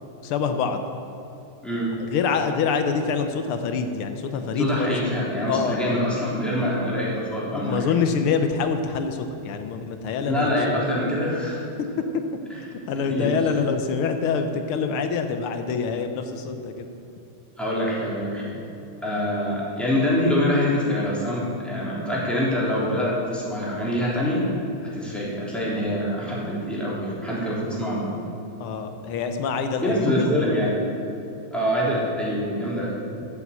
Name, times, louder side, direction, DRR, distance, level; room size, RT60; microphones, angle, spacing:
voice 1, 0.2-0.8 2.0-5.1 5.5-5.8 7.5-10.8 12.9-16.9 28.6-30.3, left 5 dB, 85° left, 7 dB, 1.7 m, -26 dB
voice 2, 1.6-1.9 4.6-7.9 10.3-11.7 13.1-13.4 17.6-18.6 19.0-24.4 24.8-28.1 29.8-30.8 31.5-33.0, equal, ahead, -7 dB, 3.3 m, -25 dB
13.5 x 7.3 x 8.2 m, 2.9 s
omnidirectional pair, 2.3 m